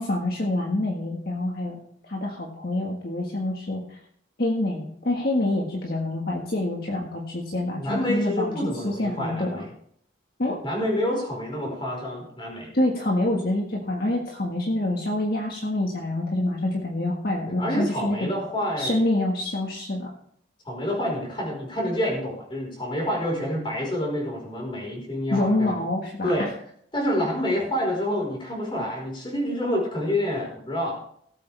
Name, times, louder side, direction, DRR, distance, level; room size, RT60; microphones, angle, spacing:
voice 1, 0.0-1.8 2.1-4.0 4.4-8.5 8.8-9.6 10.4-10.6 12.7-18.3 18.8-20.1 25.3-26.5, left 1 dB, 50° left, -2 dB, 1.7 m, -26 dB
voice 2, 7.7-9.7 10.6-12.7 17.5-19.0 20.6-25.8 26.2-26.5 26.9-31.0, left 1 dB, 25° left, -2 dB, 4.8 m, -28 dB
18.0 x 8.3 x 3.5 m, 0.66 s
head